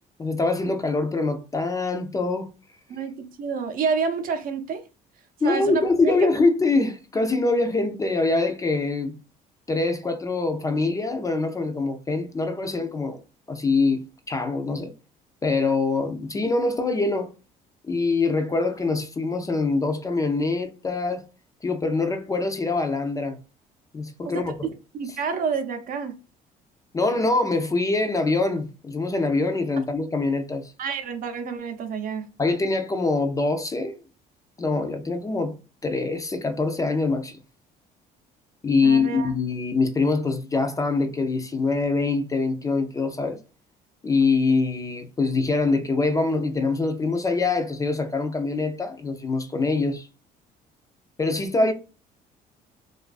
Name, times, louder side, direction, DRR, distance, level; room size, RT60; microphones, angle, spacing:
voice 1, 0.2-2.5 5.4-9.2 9.7-13.2 13.5-14.0 14.3-14.9 15.4-17.3 17.8-21.2 21.6-23.4 23.9-24.7 26.9-30.7 32.4-34.0 34.6-35.5 35.8-37.4 38.6-43.4 44.0-50.1 51.2-51.7, left 3 dB, 20° left, 0.3 m, -24 dB
voice 2, 2.9-4.9 5.4-6.1 24.3-26.1 30.8-32.3 38.8-39.3 51.6-51.7, right 5 dB, 55° right, 0.5 m, -29 dB
2.3 x 2.3 x 2.3 m
cardioid pair, 110°, 17 cm